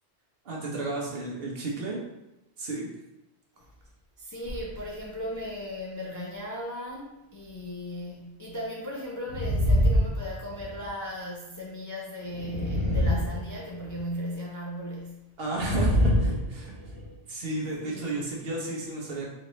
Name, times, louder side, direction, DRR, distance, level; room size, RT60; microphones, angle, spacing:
voice 1, 0.4-2.0 2.6-2.9 15.4-16.7 17.3-19.3, right 2 dB, 60° right, -2 dB, 1.1 m, -32 dB
voice 2, 4.2-15.2 17.6-18.1, equal, 25° left, -4 dB, 0.4 m, -37 dB
sound 1, 9.3-10.9 12.2-14.0 15.5-17.1, left 1 dB, 20° right, 1.0 m, -25 dB
4.1 x 2.8 x 3.1 m, 0.91 s
omnidirectional pair, 1.1 m